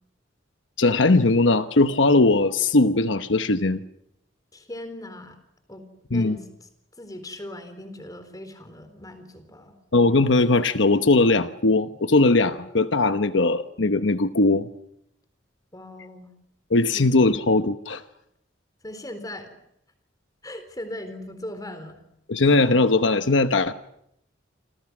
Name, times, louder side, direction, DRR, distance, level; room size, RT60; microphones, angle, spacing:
voice 1, 0.8-3.8 6.1-6.4 9.9-14.7 16.7-18.0 22.3-23.7, left 2 dB, 75° left, 10 dB, 1.0 m, -19 dB
voice 2, 4.5-5.4 5.7-6.5 7.0-9.8 15.7-16.3 16.9-17.1 18.8-19.5 20.4-22.0, left 1 dB, 20° left, 9 dB, 4.1 m, -39 dB
28.5 x 27.0 x 6.2 m, 0.77 s
head